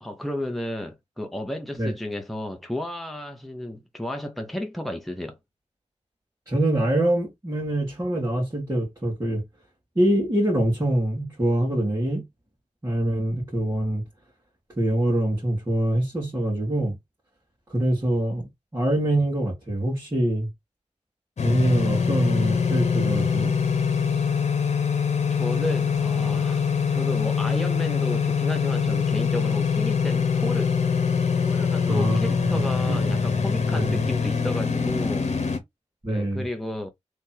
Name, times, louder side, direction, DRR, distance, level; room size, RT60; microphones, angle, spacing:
voice 1, 0.0-5.4 25.3-30.7 31.4-35.3 36.1-36.9, left 1 dB, ahead, 0.9 m, -32 dB
voice 2, 6.5-9.4 10.0-12.2 12.8-14.0 14.8-16.9 17.7-18.5 18.7-20.5 21.4-23.5 31.8-33.1 33.7-34.1 36.0-36.4, right 1 dB, 25° right, 2.1 m, -24 dB
sound 1, 21.4-35.6, left 6 dB, 60° left, 1.1 m, -24 dB
3.5 x 3.0 x 4.4 m
wide cardioid pair, 95°, 13 cm